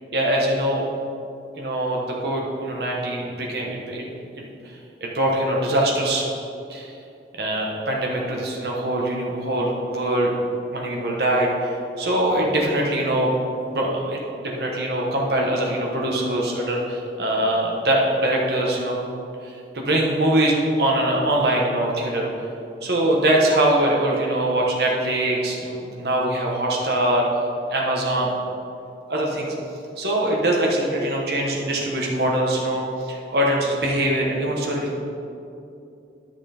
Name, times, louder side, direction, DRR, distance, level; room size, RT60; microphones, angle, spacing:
voice 1, 0.1-0.9 1.6-4.1 4.4-4.5 5.0-6.3 6.7-6.9 7.3-10.3 10.7-13.3 13.6-19.0 19.4-20.5 20.8-22.3 22.8-27.2 27.7-28.3 29.1-29.5 30.0-35.0, right 1 dB, 70° right, -2 dB, 1.3 m, -23 dB
10.5 x 5.9 x 4.4 m, 2.7 s
head